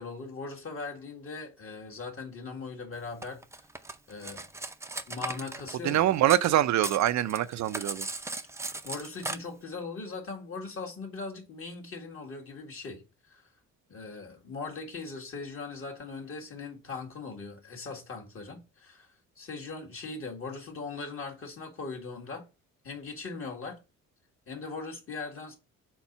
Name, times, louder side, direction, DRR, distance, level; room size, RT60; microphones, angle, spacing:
voice 1, 0.0-3.4 4.1-4.5 5.1-6.0 8.8-13.4 13.9-19.1 19.4-22.4 22.8-23.8 24.5-25.6, left 4 dB, 45° left, 2.0 m, -40 dB
Cutlery silverware, 3.2-6.5 6.8-9.4, right 2 dB, 10° right, 0.5 m, -37 dB
voice 2, 5.8-8.1, right 13 dB, 65° right, 0.5 m, -24 dB
4.5 x 3.9 x 5.5 m
cardioid pair, 90°, 30 cm